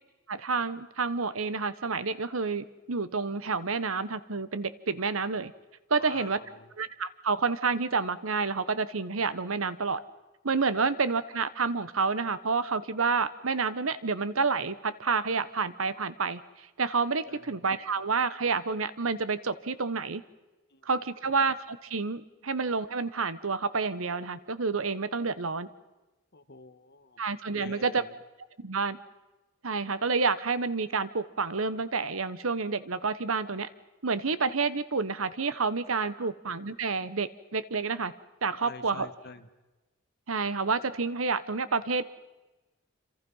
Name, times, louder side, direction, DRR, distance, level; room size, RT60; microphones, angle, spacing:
voice 1, 0.3-5.5 5.9-6.4 6.8-10.0 10.4-20.2 20.8-25.7 27.2-28.0 28.6-29.0 29.6-33.7 34.0-38.1 38.4-39.1 40.3-42.0, right 4 dB, 85° right, 15 dB, 1.2 m, -29 dB
voice 2, 6.0-6.7 17.3-17.6 20.7-20.9 21.2-21.3 26.3-27.2 27.5-28.2 36.2-36.3 38.6-39.5, left 3 dB, 55° left, 9 dB, 1.7 m, -47 dB
27.0 x 27.0 x 5.6 m, 1.1 s
head